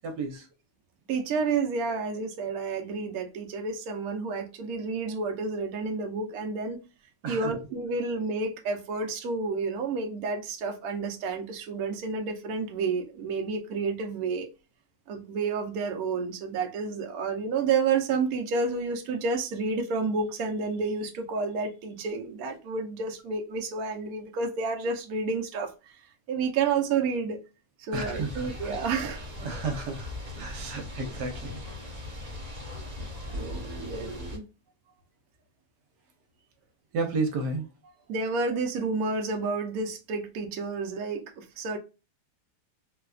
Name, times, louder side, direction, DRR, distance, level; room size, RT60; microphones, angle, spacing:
voice 1, 0.0-0.5 7.2-7.5 27.9-28.8 29.4-31.6 36.9-37.6, right 3 dB, 80° right, 1.4 m, -32 dB
voice 2, 1.1-6.8 7.3-14.5 15.1-25.7 26.3-27.4 27.9-29.3 32.8-32.9 33.3-34.4 38.1-41.8, right 4 dB, 65° right, 1.1 m, -30 dB
sound 1, 27.9-34.4, left 1 dB, 30° right, 0.9 m, -39 dB
4.0 x 2.3 x 2.3 m
omnidirectional pair, 1.8 m